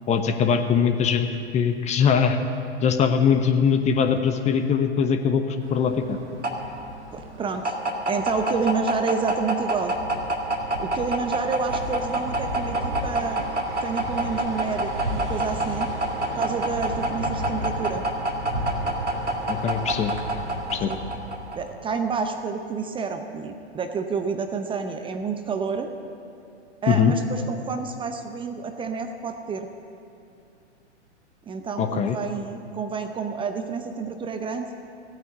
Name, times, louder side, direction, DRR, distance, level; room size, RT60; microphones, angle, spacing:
voice 1, 0.1-2.4 2.8-6.2 19.5-20.1 20.7-20.9 26.9-27.1 31.8-32.2, left 7 dB, 20° left, 7 dB, 0.8 m, -21 dB
sound 1, 5.7-21.7, right 1 dB, 90° right, 2.0 m, -27 dB
voice 2, 7.1-7.8 8.1-9.9 10.8-13.5 13.8-15.9 16.3-18.0 20.9-21.0 21.5-25.9 26.8-29.7 31.5-34.7, right 5 dB, 15° right, 7 dB, 0.7 m, -29 dB
16.0 x 9.3 x 8.3 m, 2.5 s
figure-of-eight pair, 105°, 34 cm